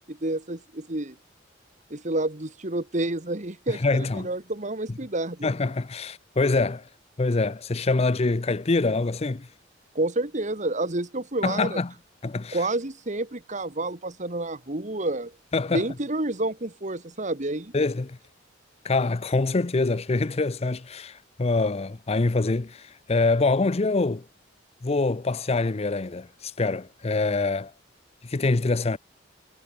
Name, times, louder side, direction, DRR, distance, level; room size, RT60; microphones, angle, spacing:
voice 1, 0.1-1.1 1.9-5.5 10.0-11.8 12.5-15.3 15.7-17.7, right 2 dB, 40° right, 2.1 m, -29 dB
voice 2, 3.7-4.3 5.4-6.9 7.2-9.5 11.4-11.9 12.2-12.6 15.5-15.9 17.7-18.2 18.8-24.3 24.8-27.7 28.2-29.0, left 3 dB, 30° left, 0.6 m, -25 dB
head